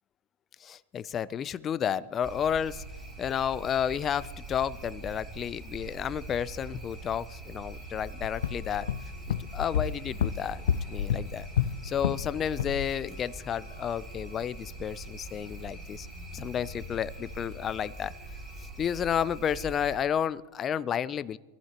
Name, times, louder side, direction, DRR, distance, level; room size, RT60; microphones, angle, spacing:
voice 1, 0.6-2.8 3.2-8.9 9.3-11.5 11.8-16.1 16.3-18.1 18.8-21.4, left 8 dB, 30° left, 17 dB, 0.5 m, -31 dB
sound 1, 2.2-20.0, right 2 dB, 15° right, 4.9 m, -43 dB
sound 2, 2.6-18.7, left 8 dB, 60° left, 1.4 m, -53 dB
sound 3, 8.2-12.3 12.6-12.9, left 9 dB, 80° left, 0.5 m, -30 dB
24.0 x 14.5 x 3.0 m, 1.2 s
hypercardioid pair, 115°, 0 cm